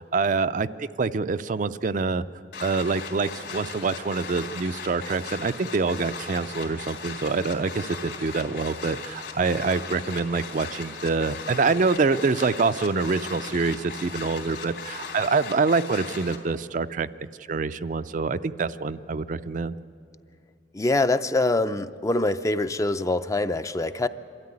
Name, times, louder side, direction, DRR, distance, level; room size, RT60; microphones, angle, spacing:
voice 1, 0.0-2.2 2.6-17.1 17.5-19.8, right 4 dB, 45° right, 12 dB, 0.4 m, -26 dB
sound 1, 2.5-16.4, left 5 dB, 70° left, 3.2 m, -38 dB
voice 2, 20.7-24.1, left 2 dB, 20° left, 11 dB, 0.5 m, -24 dB
25.5 x 13.5 x 9.7 m, 2.3 s
head